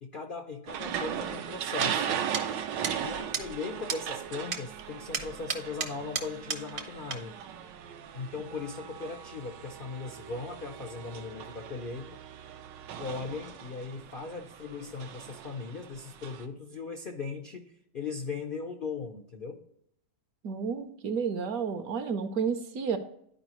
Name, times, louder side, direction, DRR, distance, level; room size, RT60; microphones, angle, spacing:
voice 1, 0.0-2.2 3.0-7.4 8.1-12.1 13.0-19.6, left 4 dB, 75° left, 4 dB, 0.4 m, -38 dB
sound 1, 0.7-16.5, right 8 dB, 80° right, 1.3 m, -38 dB
sound 2, 1.8-1.9 2.3-2.4 2.8-3.0 3.3-3.5 3.9-4.0 4.5-4.6 5.1-6.8 7.1-7.2, right 5 dB, 45° right, 0.7 m, -32 dB
voice 2, 20.4-23.0, right 6 dB, 65° right, 8 dB, 1.0 m, -31 dB
11.5 x 4.8 x 3.0 m, 0.73 s
omnidirectional pair, 1.9 m